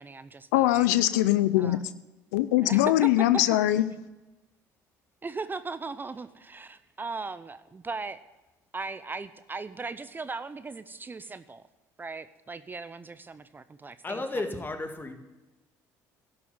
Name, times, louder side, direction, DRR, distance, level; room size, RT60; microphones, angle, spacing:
voice 1, 0.0-0.9 1.6-1.8 2.6-3.1 5.2-8.2 8.7-11.6 12.0-14.6, right 4 dB, 25° right, 14 dB, 0.6 m, -38 dB
voice 2, 0.5-1.8 2.3-3.9, left 15 dB, 90° left, 15 dB, 0.5 m, -22 dB
voice 3, 14.0-15.1, left 2 dB, 25° left, 6 dB, 2.1 m, -33 dB
12.0 x 7.0 x 9.5 m, 1.1 s
supercardioid pair, 75°, 8 cm